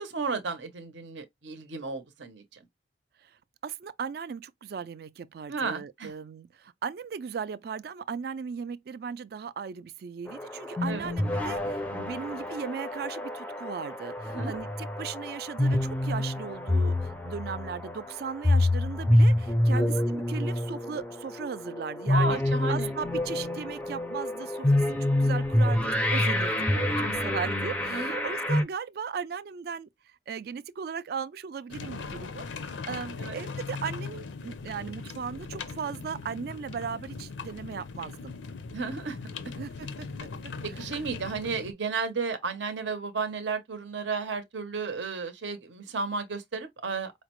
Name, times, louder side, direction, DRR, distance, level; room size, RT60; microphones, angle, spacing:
voice 1, 0.0-2.6 5.5-6.1 10.9-11.1 14.3-14.6 19.7-19.9 22.1-22.9 27.9-28.2 33.2-33.4 38.7-39.2 40.6-47.1, right 4 dB, 80° right, 0.7 m, -33 dB
voice 2, 3.2-22.4 22.7-29.9 30.3-38.3 39.6-40.3 40.8-40.9, right 6 dB, 55° right, 0.3 m, -37 dB
sound 1, 10.3-28.6, left 1 dB, 10° left, 0.4 m, -27 dB
sound 2, 31.7-41.7, left 4 dB, 85° left, 0.5 m, -39 dB
4.9 x 2.1 x 3.0 m
head